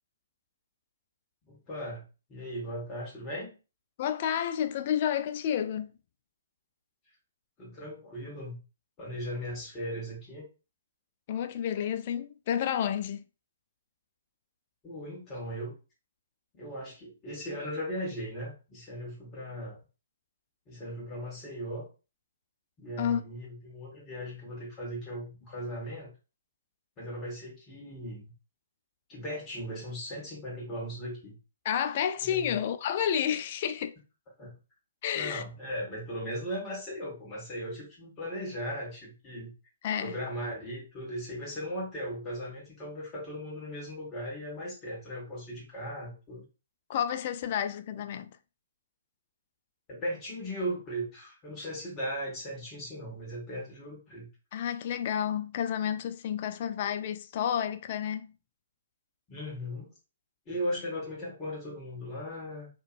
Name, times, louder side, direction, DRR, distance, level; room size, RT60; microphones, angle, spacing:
voice 1, 1.5-2.0 2.3-3.5 7.6-8.6 9.0-10.4 14.8-15.7 16.5-19.8 20.7-21.9 22.8-26.1 27.0-28.3 29.1-31.4 32.2-32.5 34.4-34.5 35.1-39.5 40.0-46.4 49.9-54.3 59.3-59.9 60.4-62.7, equal, 25° left, 1.5 m, -38 dB
voice 2, 4.0-5.9 11.3-13.2 23.0-23.2 31.6-33.9 35.0-35.4 39.8-40.2 46.9-48.4 54.5-58.3, left 9 dB, 45° left, 0.3 m, -30 dB
2.9 x 2.6 x 2.5 m
hypercardioid pair, 130°, 0 cm